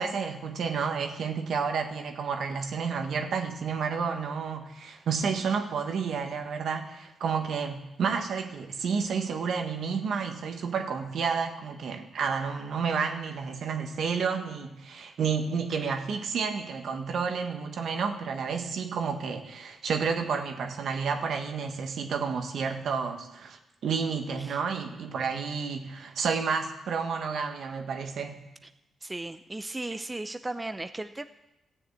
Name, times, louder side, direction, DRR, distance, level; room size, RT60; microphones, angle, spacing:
voice 1, 0.0-28.4, right 5 dB, 70° right, 5 dB, 1.5 m, -30 dB
voice 2, 29.0-31.3, right 2 dB, 20° right, 9 dB, 0.7 m, -36 dB
13.5 x 7.2 x 8.4 m, 0.92 s
cardioid pair, 65°, 0 cm